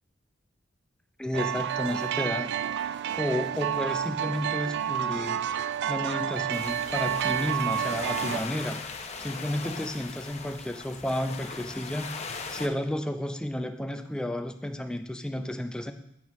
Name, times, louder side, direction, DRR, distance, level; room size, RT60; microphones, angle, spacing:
voice 1, 1.2-2.5 3.2-5.4 5.9-8.8 9.2-15.9, left 1 dB, 5° left, 6 dB, 0.5 m, -32 dB
sound 1, 1.3-8.4, right 9 dB, 60° right, 0.3 m, -30 dB
sound 2, 6.5-12.7, left 4 dB, 35° left, 0.8 m, -39 dB
11.0 x 7.4 x 3.1 m, 0.76 s
head